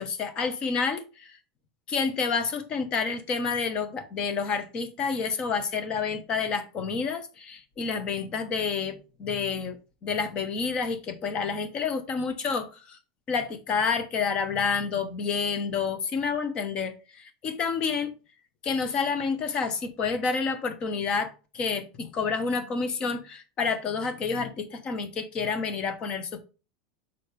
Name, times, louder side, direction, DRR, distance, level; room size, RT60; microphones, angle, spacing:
voice 1, 0.0-1.4 1.9-9.8 10.0-13.0 13.3-18.1 18.6-26.4, left 5 dB, 30° left, 1.0 m, -29 dB
6.4 x 5.4 x 3.3 m
supercardioid pair, 155°, 3 cm